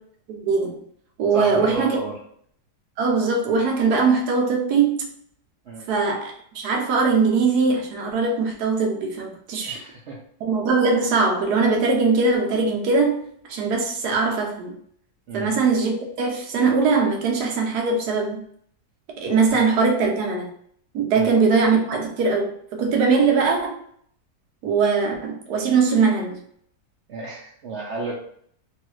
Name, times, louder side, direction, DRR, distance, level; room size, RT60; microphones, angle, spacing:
voice 1, 0.3-0.8 1.2-2.0 3.0-5.0 5.9-9.8 10.4-14.7 15.3-18.4 19.2-20.5 20.9-23.8 24.6-26.4, right 4 dB, 80° right, 1 dB, 1.2 m, -21 dB
voice 2, 1.3-2.2 5.7-5.9 9.6-10.2 15.3-15.6 19.5-19.6 21.1-21.4 27.1-28.1, right 3 dB, 65° right, -3 dB, 0.7 m, -32 dB
3.1 x 2.3 x 3.0 m, 0.63 s
omnidirectional pair, 1.7 m